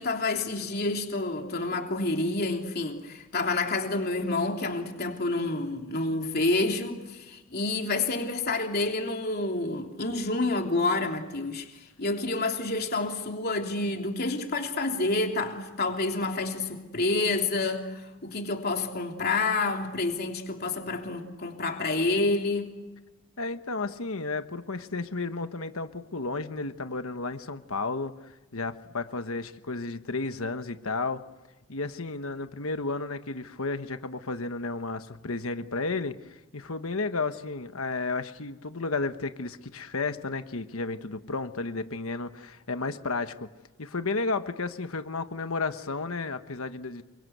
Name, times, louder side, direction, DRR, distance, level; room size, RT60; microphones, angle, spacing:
voice 1, 0.0-22.8, left 2 dB, 45° left, 3.2 m, -28 dB
voice 2, 23.4-31.2 31.7-43.5 43.8-47.0, left 3 dB, 65° left, 1.3 m, -32 dB
28.0 x 24.0 x 8.1 m
head